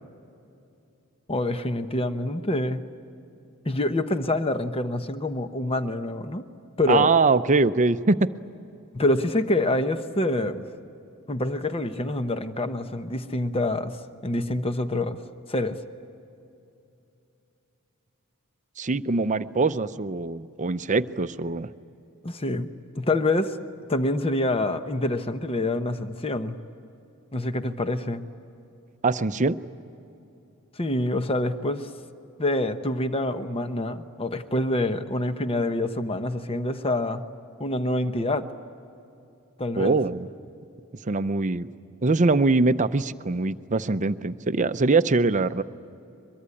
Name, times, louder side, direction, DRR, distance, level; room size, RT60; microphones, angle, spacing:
voice 1, 1.3-2.8 3.6-6.4 6.8-7.1 8.9-10.7 11.3-15.2 15.5-15.8 22.2-22.7 22.9-23.6 23.9-26.6 27.3-28.2 30.8-31.9 32.4-37.2 37.6-38.5 39.6-40.0, left 1 dB, 25° left, 9 dB, 0.9 m, -26 dB
voice 2, 6.9-8.2 18.8-21.7 29.0-29.6 39.8-40.3 41.1-41.7 42.0-45.6, right 3 dB, 35° right, 12 dB, 0.6 m, -23 dB
23.5 x 22.5 x 9.9 m, 2.8 s
head